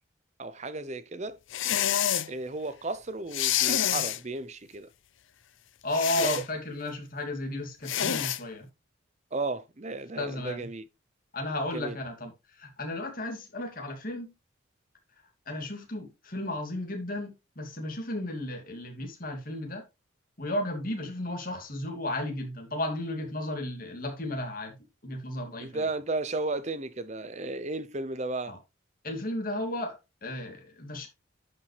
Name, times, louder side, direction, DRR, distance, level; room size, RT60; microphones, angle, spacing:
voice 1, 0.4-1.4 2.3-4.9 6.2-6.3 9.3-10.8 11.7-12.0 25.6-28.6, right 2 dB, 35° right, 0.6 m, -34 dB
sound 1, 1.5-2.3 3.3-4.2 5.9-6.4 7.8-8.4, left 10 dB, 65° left, 0.6 m, -27 dB
voice 2, 5.8-8.7 10.2-10.7 11.3-14.3 15.5-19.8 20.4-25.9 28.5-28.6 29.0-31.1, left 1 dB, 40° left, 2.4 m, -34 dB
11.0 x 5.5 x 3.3 m
head